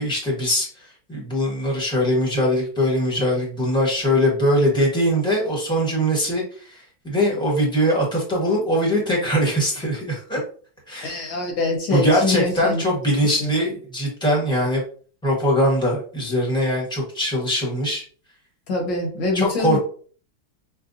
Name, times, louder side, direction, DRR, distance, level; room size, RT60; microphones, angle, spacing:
voice 1, 0.0-10.4 10.9-11.4 11.9-14.8 15.2-18.0 19.3-19.8, equal, 5° left, -2 dB, 1.0 m, -22 dB
voice 2, 11.0-12.8 13.2-13.5 18.7-19.8, left 2 dB, 70° left, 1 dB, 1.9 m, -24 dB
5.8 x 2.2 x 2.6 m, 0.43 s
omnidirectional pair, 2.0 m